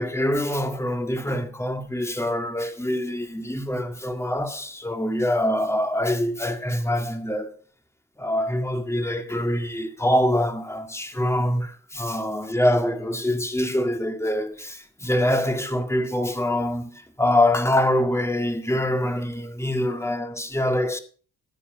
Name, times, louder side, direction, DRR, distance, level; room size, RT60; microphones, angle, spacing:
voice 1, 0.0-7.5 8.2-21.0, left 1 dB, 10° left, 2.0 m, -24 dB
13.0 x 8.8 x 5.3 m
cardioid pair, 90°, 30 cm